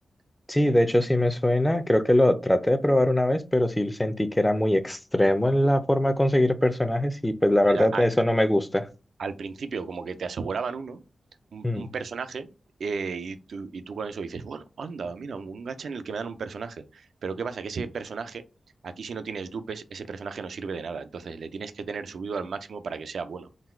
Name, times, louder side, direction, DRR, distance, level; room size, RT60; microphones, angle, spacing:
voice 1, 0.5-8.9 11.6-11.9, left 1 dB, 15° left, 0.6 m, -22 dB
voice 2, 7.6-8.0 9.2-11.0 11.5-12.5 12.8-18.4 18.8-23.5, right 5 dB, 80° right, 0.4 m, -34 dB
4.0 x 2.3 x 4.3 m
cardioid pair, 55°, 0 cm